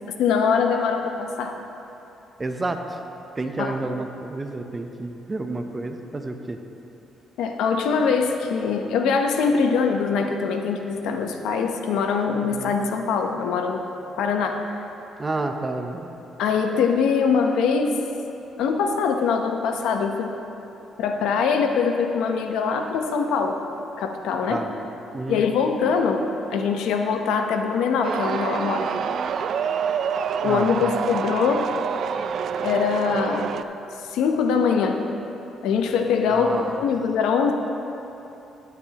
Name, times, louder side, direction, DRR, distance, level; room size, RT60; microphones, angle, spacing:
voice 1, 0.2-1.6 3.6-3.8 7.4-13.8 14.2-14.8 16.4-17.9 18.6-20.3 21.0-23.6 24.0-24.6 25.3-26.2 26.5-28.9 30.4-31.7 32.6-33.6 34.0-35.0 35.6-37.5, left 5 dB, 85° left, 4 dB, 0.8 m, -23 dB
voice 2, 2.4-2.8 3.4-6.6 12.5-12.7 15.2-16.1 24.5-24.7 25.1-25.4 30.4-31.0 36.3-36.8, right 2 dB, 20° right, 5 dB, 0.7 m, -30 dB
sound 1, 28.0-33.6, right 7 dB, 60° right, 0.3 m, -27 dB
13.5 x 9.4 x 2.9 m, 2.9 s
cardioid pair, 110°, 0 cm